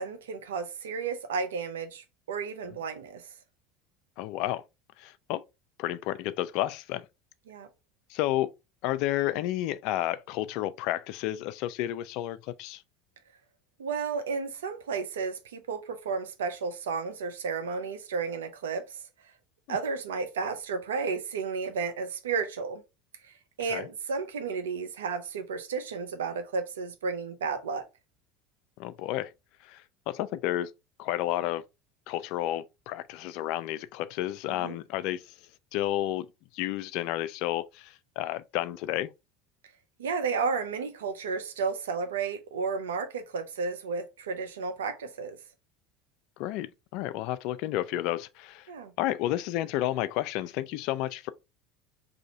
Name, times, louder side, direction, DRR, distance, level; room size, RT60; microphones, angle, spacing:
voice 1, 0.0-3.3 7.5-7.7 13.8-19.0 19.7-22.8 23.2-27.9 34.4-34.8 40.0-45.4 48.7-48.9, right 5 dB, 85° right, 0.6 m, -33 dB
voice 2, 4.2-4.6 5.0-5.4 5.8-7.1 8.1-8.5 8.8-12.8 19.7-19.8 23.7-23.8 28.8-29.3 29.6-30.7 31.0-31.6 32.1-35.2 35.7-36.3 36.5-39.1 46.4-48.7 49.0-51.3, left 14 dB, 65° left, 0.3 m, -31 dB
2.7 x 2.6 x 4.2 m
hypercardioid pair, 80°, 0 cm